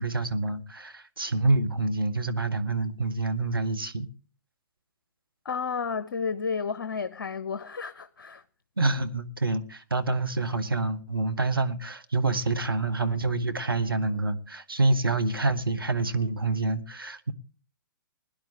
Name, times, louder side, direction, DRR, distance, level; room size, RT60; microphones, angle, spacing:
voice 1, 0.0-4.1 8.8-17.3, right 3 dB, 85° right, 1.6 m, -27 dB
voice 2, 5.4-8.4, left 5 dB, 60° left, 0.9 m, -32 dB
21.0 x 11.0 x 3.0 m
figure-of-eight pair, 120°, 12 cm